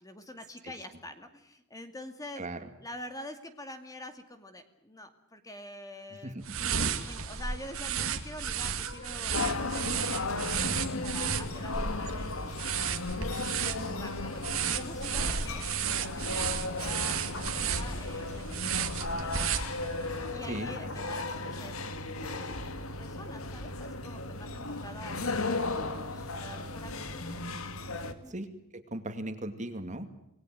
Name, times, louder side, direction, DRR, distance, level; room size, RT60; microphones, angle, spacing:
voice 1, 0.0-2.4 2.8-12.8 13.6-15.7 16.0-19.5 20.3-22.7 23.0-27.5 28.1-28.4, left 1 dB, 15° left, 7 dB, 2.3 m, -46 dB
voice 2, 2.4-2.7 6.1-6.6 9.9-10.0 14.5-14.7 20.5-20.9 28.3-30.1, right 1 dB, 35° right, 8 dB, 2.6 m, -38 dB
sound 1, 6.4-20.1, right 7 dB, 80° right, 2.3 m, -33 dB
sound 2, 8.8-21.6, left 2 dB, 65° left, 4.1 m, -47 dB
sound 3, 9.3-28.1, left 2 dB, 85° left, 2.1 m, -36 dB
27.5 x 20.0 x 7.9 m, 0.82 s
head